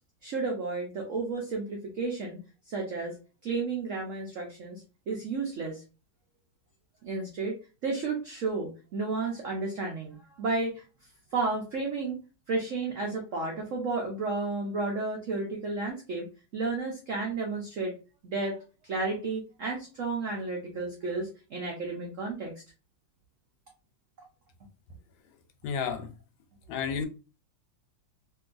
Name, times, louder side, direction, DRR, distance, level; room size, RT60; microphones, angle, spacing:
voice 1, 0.2-2.4 2.7-3.2 3.4-5.8 7.0-7.6 7.8-10.8 11.3-12.2 12.5-16.3 16.5-17.9 18.2-22.5, right 3 dB, 80° right, 0.7 m, -32 dB
voice 2, 25.6-26.1 26.7-27.1, left 6 dB, 80° left, 1.3 m, -31 dB
3.0 x 2.7 x 2.4 m
omnidirectional pair, 2.2 m